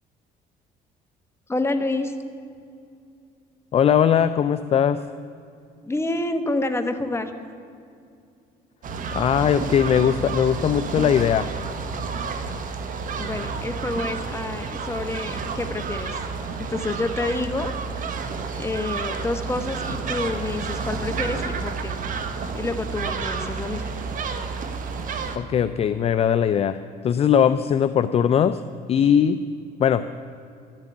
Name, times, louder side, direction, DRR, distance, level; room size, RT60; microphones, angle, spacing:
voice 1, 1.5-2.1 5.8-7.3 13.2-16.2 16.7-17.7 18.5-22.0 22.5-23.8, left 2 dB, 15° left, 7 dB, 1.1 m, -28 dB
voice 2, 3.7-5.0 9.1-11.5 25.4-26.8 27.0-28.6 28.9-29.4 29.8-30.0, left 8 dB, 35° left, 12 dB, 0.4 m, -20 dB
sound 1, 8.8-25.4, right 5 dB, 50° right, 1.3 m, -30 dB
12.5 x 7.5 x 9.7 m, 2.4 s
cardioid pair, 110°, 17 cm